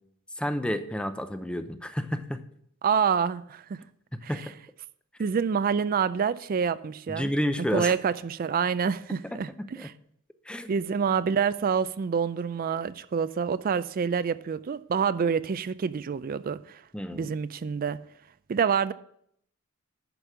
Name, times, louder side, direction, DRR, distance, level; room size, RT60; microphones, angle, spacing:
voice 1, 0.4-2.4 4.3-4.4 7.1-7.9 9.6-9.9 10.5-10.8 16.9-17.3, equal, 5° left, 0.6 m, -30 dB
voice 2, 2.8-3.8 4.2-4.5 5.2-7.3 7.7-9.9 10.7-16.8 17.1-18.0 18.5-18.9, right 6 dB, 45° right, 0.4 m, -27 dB
10.5 x 5.2 x 6.0 m
head